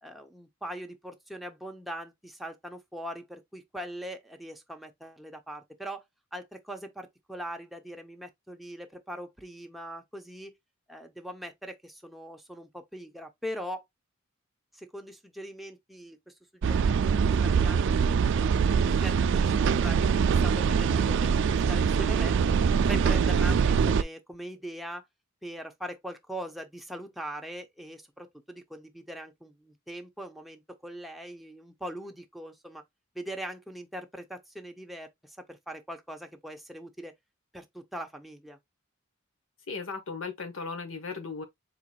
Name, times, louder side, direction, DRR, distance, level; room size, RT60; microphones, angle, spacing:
voice 1, 0.0-6.0 6.3-10.5 10.9-13.8 14.7-22.3 22.7-25.0 25.4-32.8 33.1-37.1 37.5-38.6, equal, ahead, 0.7 m, -41 dB
sound 1, 16.6-24.0, right 6 dB, 60° right, 0.4 m, -23 dB
voice 2, 39.7-41.4, left 4 dB, 70° left, 1.2 m, -36 dB
4.5 x 3.8 x 2.3 m
head